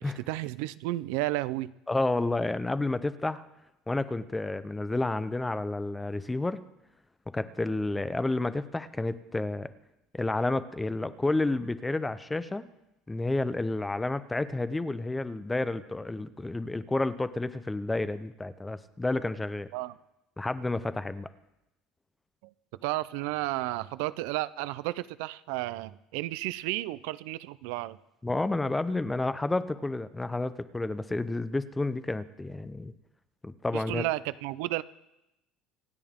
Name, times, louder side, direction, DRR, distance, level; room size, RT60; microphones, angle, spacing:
voice 1, 0.0-1.7 19.7-19.9 22.8-28.0 33.7-34.8, right 17 dB, 80° right, 17 dB, 0.4 m, -32 dB
voice 2, 1.9-3.4 3.9-6.6 7.3-9.7 10.1-12.7 13.1-19.7 20.4-21.3 28.2-32.9 33.4-34.0, left 2 dB, 10° left, 13 dB, 0.5 m, -30 dB
26.5 x 9.0 x 3.7 m, 0.90 s
cardioid pair, 160°, 0 cm